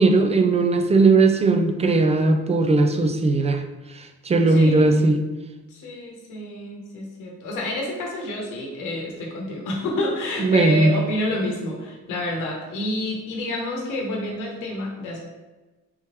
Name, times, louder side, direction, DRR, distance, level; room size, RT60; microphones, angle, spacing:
voice 1, 0.0-3.6 3.9-5.2 10.4-10.9, right 3 dB, 20° right, 5 dB, 0.4 m, -18 dB
voice 2, 4.5-5.0 5.7-15.2, left 1 dB, 85° left, -1 dB, 1.0 m, -29 dB
3.5 x 3.0 x 2.9 m, 1.2 s
cardioid pair, 90°, 30 cm